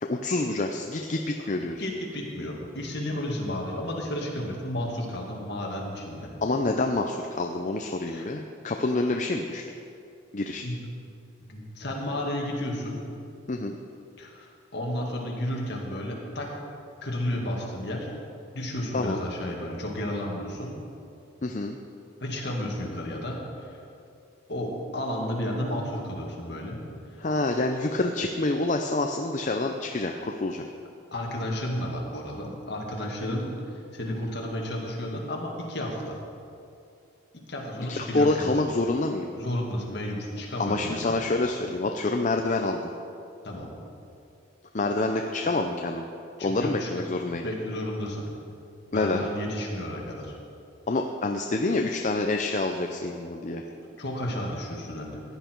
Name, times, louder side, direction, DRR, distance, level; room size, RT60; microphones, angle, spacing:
voice 1, 0.0-1.8 6.4-9.6 10.3-10.7 13.5-13.8 18.9-19.2 21.4-21.8 27.2-30.7 37.9-39.3 40.6-42.9 44.7-46.0 46.4-47.4 48.9-49.3 50.9-53.6, left 2 dB, 40° left, 3 dB, 0.5 m, -27 dB
voice 2, 1.8-6.3 8.1-8.3 10.6-10.8 11.5-13.0 14.2-16.5 17.0-18.1 18.5-20.8 22.2-23.8 24.5-26.8 31.1-36.2 37.5-38.5 39.4-41.4 43.4-43.7 46.4-46.9 47.4-48.3 48.9-50.3 53.6-55.2, left 1 dB, 55° left, -2 dB, 2.2 m, -32 dB
15.5 x 10.0 x 4.6 m, 2.6 s
head